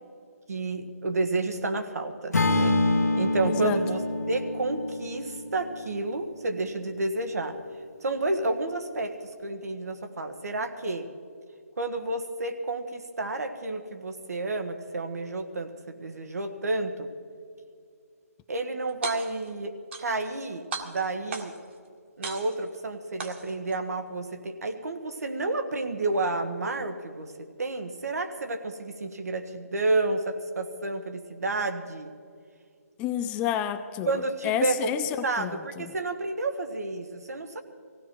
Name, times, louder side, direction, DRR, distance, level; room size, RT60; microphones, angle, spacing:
voice 1, 0.5-2.8 3.2-4.0 4.3-7.6 8.0-11.1 11.8-17.1 18.5-21.5 22.2-32.1 34.0-34.9 35.2-37.6, right 2 dB, 70° right, 7 dB, 1.6 m, -30 dB
Acoustic guitar / Strum, 2.3-6.5, left 2 dB, 80° left, 1.4 m, -27 dB
voice 2, 3.4-3.8 33.0-35.9, left 10 dB, 15° left, 10 dB, 0.4 m, -30 dB
sound 1, 18.9-19.5 19.9-20.4 20.7-21.7 22.2-22.8 23.2-23.8, right 4 dB, 45° right, 1.8 m, -36 dB
18.5 x 16.5 x 4.6 m, 2.3 s
figure-of-eight pair, 150°, 9 cm